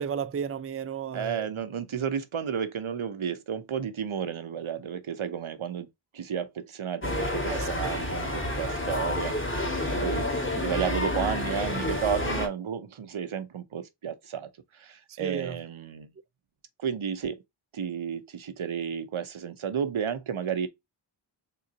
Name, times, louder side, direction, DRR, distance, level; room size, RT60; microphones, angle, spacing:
voice 1, 0.0-1.5 7.5-7.7 15.1-15.6, right 7 dB, 30° right, 0.4 m, -33 dB
voice 2, 1.1-5.9 6.1-10.3 10.6-16.1 16.8-17.4 17.7-20.7, right 7 dB, 85° right, 0.8 m, -32 dB
sound 1, 7.0-12.5, left 1 dB, 25° left, 1.8 m, -29 dB
4.1 x 3.8 x 2.7 m
wide cardioid pair, 50°, 48 cm